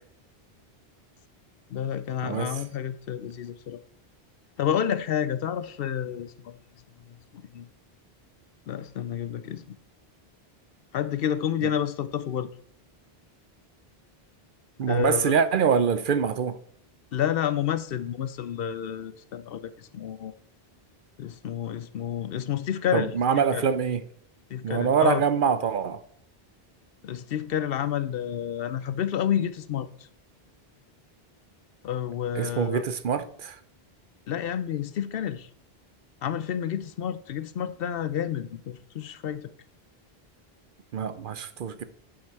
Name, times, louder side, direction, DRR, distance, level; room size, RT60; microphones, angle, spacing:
voice 1, 1.7-3.8 4.6-6.5 7.3-7.7 8.7-9.8 10.9-12.5 14.8-15.3 17.1-20.3 21.2-23.7 24.5-25.2 27.0-29.9 31.8-32.8 34.3-35.5 36.2-39.4, left 9 dB, 70° left, 0.8 m, -29 dB
voice 2, 14.8-16.6 22.9-24.0 24.6-26.0 32.4-33.6 40.9-41.8, right 7 dB, 60° right, 0.7 m, -24 dB
8.6 x 5.8 x 4.5 m
omnidirectional pair, 1.0 m